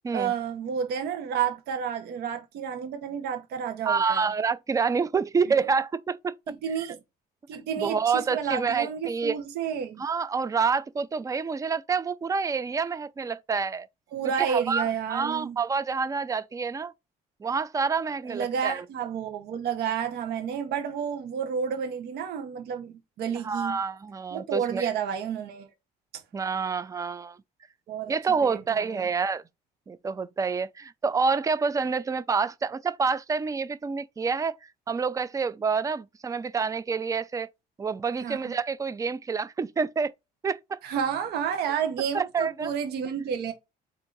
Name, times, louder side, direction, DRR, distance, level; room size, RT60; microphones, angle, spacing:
voice 1, 0.1-4.3 6.5-7.0 7.5-10.0 14.1-15.6 18.3-23.8 24.3-25.7 27.9-28.1 28.4-29.1 38.2-38.5 40.8-43.5, right 7 dB, 75° right, 1.0 m, -30 dB
voice 2, 3.9-6.5 7.8-9.4 10.0-13.9 14.4-16.9 17.4-18.8 23.4-24.9 26.3-27.4 28.1-29.4 29.9-34.6 34.9-37.5 37.8-40.1 40.4-40.8 42.1-42.7, right 5 dB, 20° right, 0.4 m, -28 dB
3.7 x 2.7 x 4.4 m
cardioid pair, 110°, 17 cm